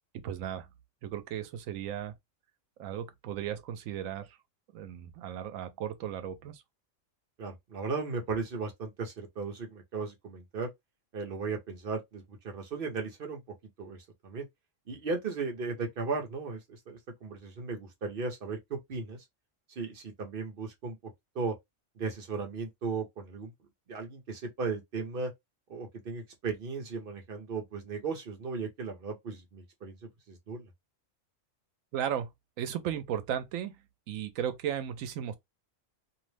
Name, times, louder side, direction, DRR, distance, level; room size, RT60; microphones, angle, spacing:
voice 1, 0.2-0.7 1.0-2.1 2.8-4.4 4.7-6.6 31.9-32.3 32.6-33.8 34.1-35.3, right 9 dB, 90° right, 1.0 m, -35 dB
voice 2, 7.4-10.7 11.1-13.4 13.8-14.0 14.2-14.5 14.9-19.2 19.8-21.0 21.3-21.5 22.0-23.5 23.9-25.3 25.7-30.0 30.3-30.7, right 4 dB, 50° right, 0.9 m, -36 dB
2.7 x 2.0 x 3.2 m
omnidirectional pair, 1.3 m